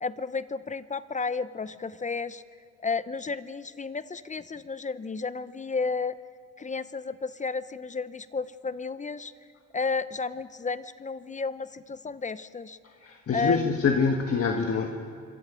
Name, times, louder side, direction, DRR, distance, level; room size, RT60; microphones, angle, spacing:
voice 1, 0.0-2.4 2.8-6.2 6.6-9.3 9.7-12.8 13.3-13.9, left 4 dB, 25° left, 15 dB, 0.7 m, -32 dB
voice 2, 13.0-14.9, left 5 dB, 50° left, 3 dB, 1.6 m, -25 dB
26.0 x 23.0 x 5.1 m, 2.5 s
cardioid pair, 90°, 30 cm